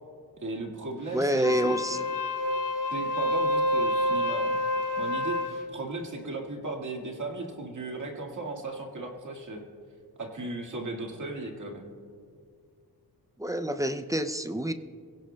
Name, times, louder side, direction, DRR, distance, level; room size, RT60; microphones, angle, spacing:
voice 1, 0.4-2.0 2.9-4.6 5.0-9.6 10.2-11.9, right 2 dB, 50° right, 1 dB, 1.9 m, -36 dB
voice 2, 1.1-2.0 13.4-14.7, equal, 10° right, 9 dB, 0.4 m, -27 dB
Wind instrument woodwind instrument, 1.3-5.6, left 1 dB, 55° left, 1.1 m, -28 dB
25.5 x 17.0 x 2.2 m, 2.2 s
wide cardioid pair, 135°, 39 cm